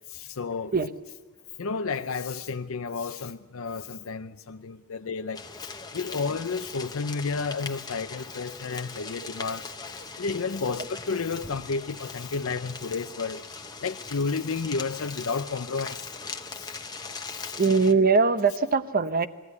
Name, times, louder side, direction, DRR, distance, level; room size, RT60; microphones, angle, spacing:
voice 1, 0.1-0.7 1.6-5.4 5.9-9.7 10.2-13.4 13.8-16.1 16.5-16.8 17.3-17.5, left 4 dB, 65° left, 0.6 m, -31 dB
sound 1, 5.3-17.9, left 4 dB, 20° left, 1.1 m, -40 dB
voice 2, 17.5-19.3, right 4 dB, 40° right, 0.9 m, -21 dB
21.5 x 15.0 x 9.6 m
head